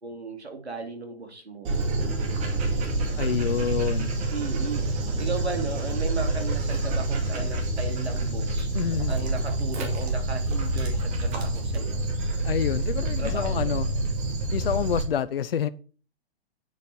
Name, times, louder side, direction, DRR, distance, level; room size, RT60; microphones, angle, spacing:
voice 1, 0.0-1.7 2.0-2.4 4.3-8.8 9.1-12.0 13.2-13.7, right 3 dB, 85° right, 4 dB, 2.8 m, -36 dB
Dog, 1.6-15.0, right 2 dB, 25° right, 2.2 m, -27 dB
voice 2, 3.2-4.1 8.7-9.1 12.4-13.9 14.5-15.7, left 9 dB, 65° left, 14 dB, 0.6 m, -28 dB
8.7 x 6.8 x 4.6 m, 0.40 s
figure-of-eight pair, 125°, 31 cm